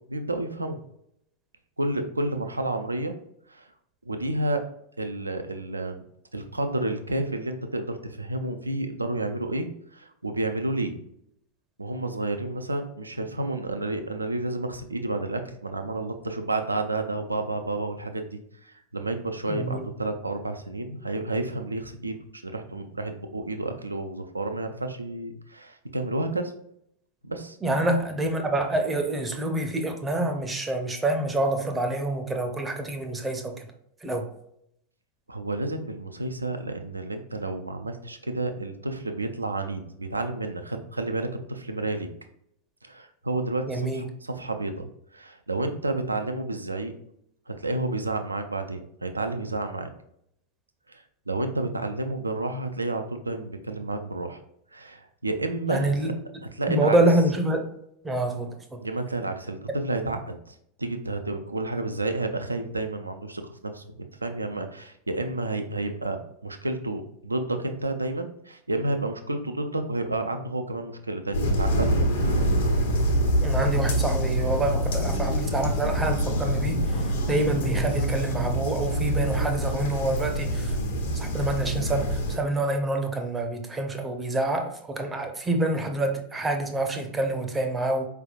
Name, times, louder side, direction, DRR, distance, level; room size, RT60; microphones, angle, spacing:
voice 1, 0.1-0.8 1.8-3.2 3.5-3.7 4.1-4.7 5.0-6.0 6.3-11.0 11.8-26.5 27.2-27.6 35.3-42.1 42.8-46.9 47.5-49.9 50.9-54.4 54.7-56.1 56.6-57.0 58.8-72.5, right 2 dB, 80° right, 6 dB, 0.5 m, -30 dB
voice 2, 19.5-19.9 27.6-33.7 34.0-34.3 43.7-44.0 55.7-56.1 56.7-57.6 58.0-58.8 73.4-76.8 77.3-80.8 81.2-88.1, right 2 dB, 15° right, 5 dB, 0.6 m, -27 dB
sound 1, 71.3-82.4, equal, 60° left, 1.0 m, -25 dB
4.7 x 3.4 x 2.3 m, 0.74 s
figure-of-eight pair, 90°, 0 cm